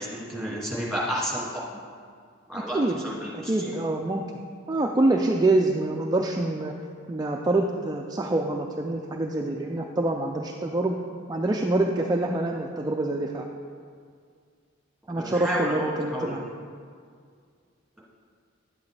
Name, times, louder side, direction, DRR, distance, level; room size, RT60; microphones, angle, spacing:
voice 1, 0.0-1.5 2.5-2.8 3.0-3.7 15.2-16.4, equal, ahead, -6 dB, 2.1 m, -31 dB
voice 2, 2.5-3.0 3.3-4.2 4.7-6.7 7.1-11.0 11.3-13.4 15.1-16.4, right 2 dB, 20° right, 1 dB, 0.4 m, -26 dB
10.0 x 8.3 x 3.3 m, 2.1 s
head